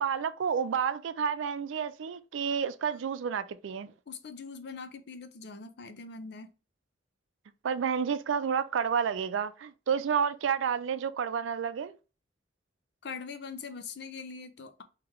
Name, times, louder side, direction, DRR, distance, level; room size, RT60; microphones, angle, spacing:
voice 1, 0.0-3.9 7.6-12.0, right 7 dB, 85° right, 0.4 m, -30 dB
voice 2, 4.1-6.5 13.0-14.8, left 5 dB, 60° left, 0.5 m, -42 dB
3.1 x 2.9 x 3.5 m
head